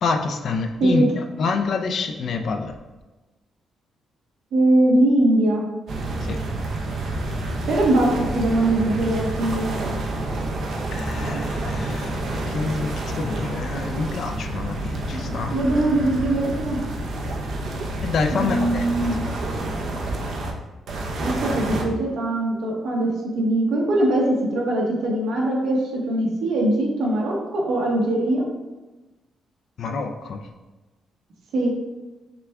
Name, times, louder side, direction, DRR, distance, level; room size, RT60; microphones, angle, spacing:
voice 1, 0.0-2.7 6.2-6.4 10.9-15.6 18.0-19.3 29.8-30.4, left 4 dB, 50° left, 5 dB, 0.4 m, -27 dB
voice 2, 4.5-5.6 7.7-9.8 15.3-16.8 18.3-19.2 21.2-28.4 31.5-31.7, right 1 dB, 80° right, -2 dB, 1.0 m, -21 dB
sound 1, 5.9-20.5 20.9-21.9, right 2 dB, 55° right, 0.6 m, -28 dB
5.9 x 2.2 x 3.4 m, 1.2 s
cardioid pair, 160°, 0 cm